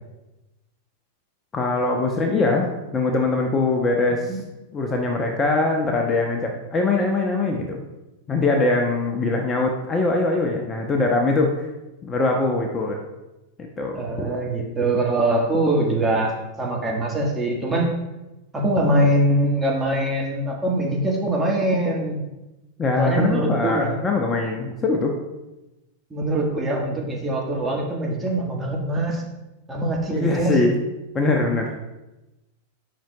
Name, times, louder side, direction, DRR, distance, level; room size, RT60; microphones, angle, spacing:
voice 1, 1.5-2.7 2.9-4.4 4.7-7.8 8.3-11.5 12.0-13.0 13.8-14.3 22.8-25.1 30.1-30.7 31.1-31.7, left 3 dB, 25° left, 1 dB, 0.9 m, -22 dB
voice 2, 13.9-16.3 16.6-17.9 18.5-22.2 23.0-24.0 26.1-29.2 29.7-30.6, right 1 dB, 15° right, -2 dB, 1.6 m, -23 dB
10.0 x 5.8 x 2.3 m, 1.0 s
figure-of-eight pair, 95°, 0 cm